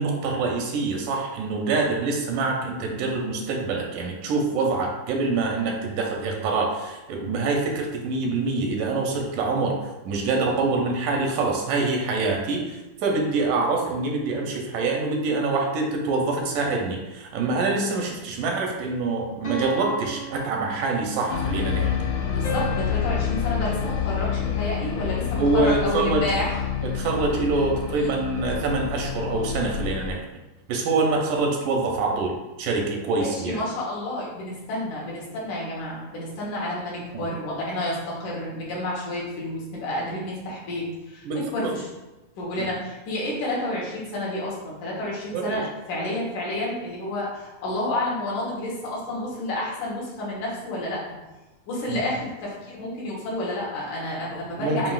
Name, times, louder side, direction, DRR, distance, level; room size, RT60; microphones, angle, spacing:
voice 1, 0.0-21.9 25.4-26.2 26.8-30.2 30.7-32.3 32.6-33.6 37.1-37.3 41.3-41.7 42.6-42.8 45.3-45.6 51.9-52.0 54.3-54.9, right 3 dB, 85° right, 1 dB, 2.2 m, -25 dB
sound 1, 19.4-21.4 22.4-24.8, right 2 dB, 45° left, 1.0 m, -36 dB
sound 2, 21.3-30.1, left 8 dB, 90° left, 1.5 m, -28 dB
voice 2, 22.2-26.6 33.2-41.3 41.5-41.9 42.4-51.0 51.7-54.9, left 1 dB, 75° left, -5 dB, 2.5 m, -30 dB
7.5 x 2.5 x 2.4 m, 1.0 s
omnidirectional pair, 3.7 m